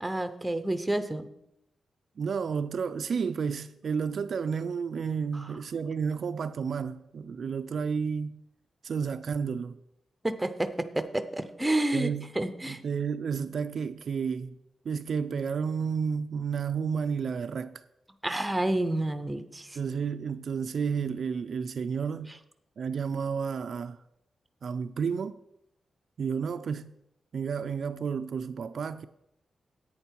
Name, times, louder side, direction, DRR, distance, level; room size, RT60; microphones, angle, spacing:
voice 1, 0.0-1.3 10.2-12.1 12.4-12.8 18.2-19.8, right 1 dB, 10° right, 0.6 m, -29 dB
voice 2, 2.2-8.4 8.8-9.8 11.9-12.3 12.7-14.6 14.9-17.8 19.8-22.3 22.8-24.0 24.6-25.4 26.2-26.9 27.3-29.1, right 6 dB, 55° right, 0.4 m, -31 dB
10.5 x 8.8 x 4.5 m
wide cardioid pair, 155°, 0 cm